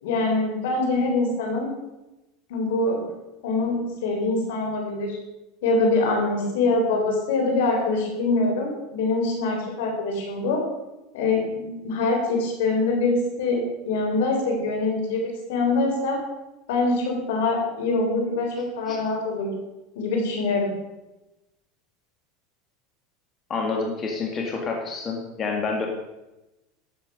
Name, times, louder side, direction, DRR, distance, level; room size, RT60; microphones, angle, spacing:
voice 1, 0.0-1.7 2.5-3.1 3.4-5.2 5.6-10.6 11.1-16.2 16.7-19.6 20.0-20.7, left 3 dB, 80° left, 1 dB, 3.9 m, -24 dB
voice 2, 23.5-25.9, left 4 dB, 30° left, 1 dB, 2.0 m, -28 dB
12.0 x 7.5 x 5.4 m, 1.0 s
supercardioid pair, 120°, 0 cm